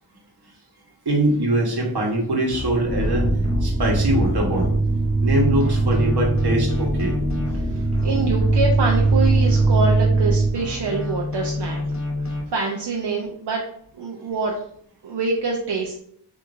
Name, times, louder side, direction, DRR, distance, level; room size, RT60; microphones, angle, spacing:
voice 1, 1.0-3.3 3.6-4.7 5.2-7.1, right 1 dB, 70° right, -1 dB, 1.4 m, -22 dB
sound 1, 2.5-5.3 5.6-10.3 10.6-12.4, left 2 dB, 45° left, 1.1 m, -30 dB
sound 2, 2.9-10.5, right 3 dB, 5° right, 0.5 m, -20 dB
voice 2, 7.5-11.8 12.2-13.6 14.0-14.5 15.0-16.0, right 3 dB, 85° right, -1 dB, 0.8 m, -25 dB
6.5 x 2.8 x 2.6 m, 0.64 s
wide cardioid pair, 105°, 40 cm